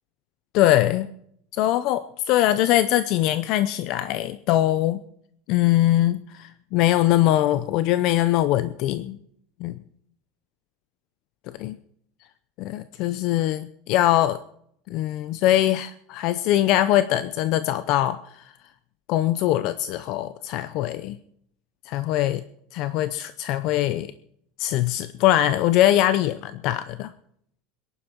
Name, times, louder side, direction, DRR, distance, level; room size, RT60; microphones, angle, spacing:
voice 1, 0.5-1.1 1.5-5.0 5.5-9.2 9.6-9.7 11.6-11.8 12.6-14.4 14.9-18.5 19.1-21.2 21.9-22.4 22.7-24.1 24.6-27.1, left 13 dB, 50° left, 14 dB, 0.6 m, -22 dB
22.5 x 11.0 x 4.5 m, 0.69 s
supercardioid pair, 160°, 0 cm